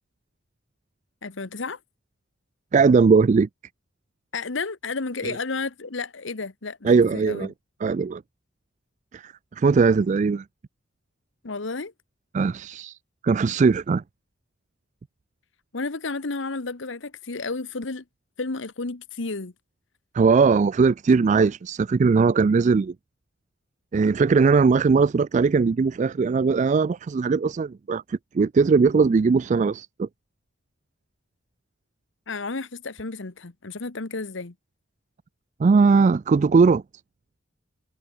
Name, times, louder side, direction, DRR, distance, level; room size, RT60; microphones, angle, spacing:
voice 1, 1.2-1.8 4.3-7.5 11.4-11.9 15.7-18.0 18.4-19.5 32.3-34.5, left 3 dB, 70° left, 1.2 m, -32 dB
voice 2, 2.7-3.5 5.2-5.4 6.8-7.5 7.8-8.2 9.1-10.4 12.3-13.0 13.2-14.0 20.1-22.9 23.9-30.1 35.6-36.8, right 4 dB, 40° right, 0.3 m, -19 dB
head